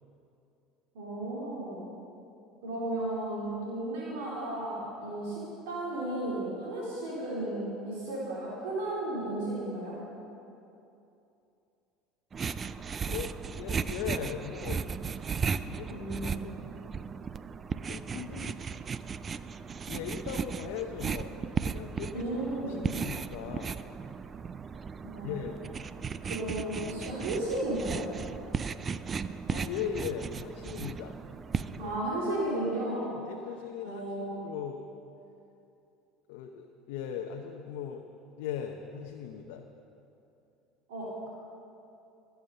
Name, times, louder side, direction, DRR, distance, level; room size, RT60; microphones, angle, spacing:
voice 1, 0.9-1.8 2.6-9.9 15.9-16.4 22.1-22.8 25.0-25.3 26.2-28.0 31.8-33.2 33.8-34.4 40.9-41.3, right 1 dB, 85° right, -6 dB, 3.1 m, -34 dB
sound 1, 12.3-32.0, right 6 dB, 30° right, 0.4 m, -36 dB
voice 2, 13.1-14.8 15.1-15.3 15.7-16.7 17.9-18.8 19.9-21.3 21.6-22.3 22.7-23.8 25.2-25.7 29.5-31.2 31.8-32.0 33.1-34.8 36.3-38.0 38.4-39.6, left 8 dB, 75° left, 3 dB, 0.7 m, -39 dB
14.5 x 7.1 x 6.7 m, 2.8 s
supercardioid pair, 90°, 0 cm